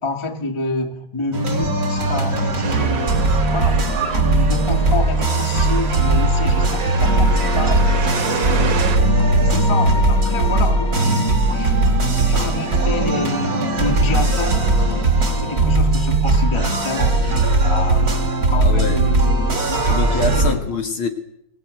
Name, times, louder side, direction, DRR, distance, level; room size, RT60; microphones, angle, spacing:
voice 1, 0.0-8.0 8.2-8.8 9.4-11.8 12.2-14.6 15.3-17.2 17.6-18.1 18.5-20.6, left 3 dB, 15° left, 1.3 m, -28 dB
sound 1, 1.3-20.5, right 2 dB, 30° right, 3.4 m, -18 dB
sound 2, 2.6-9.0, right 6 dB, 65° right, 3.3 m, -29 dB
sound 3, 7.0-15.0, left 4 dB, 85° left, 3.0 m, -31 dB
voice 2, 18.6-19.1 19.9-21.1, left 4 dB, 50° left, 2.1 m, -25 dB
23.5 x 17.5 x 9.1 m
omnidirectional pair, 3.6 m